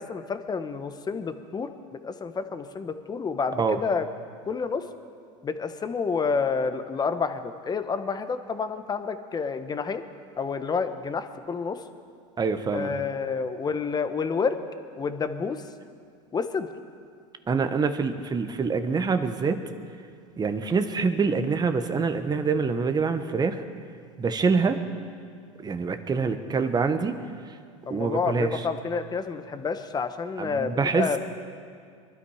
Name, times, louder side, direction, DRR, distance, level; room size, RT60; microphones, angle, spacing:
voice 1, 0.0-1.7 2.0-4.0 4.5-4.8 5.4-10.0 10.4-11.8 12.7-14.6 14.9-15.6 16.3-16.7 26.1-26.5 27.9-31.2, left 5 dB, 25° left, 9 dB, 1.1 m, -29 dB
voice 2, 12.4-12.9 17.5-19.6 20.4-23.6 24.2-24.8 25.6-27.2 27.9-28.6 30.4-31.2, right 5 dB, 25° right, 8 dB, 1.3 m, -25 dB
23.5 x 12.5 x 5.0 m, 2.2 s
supercardioid pair, 100°, 17 cm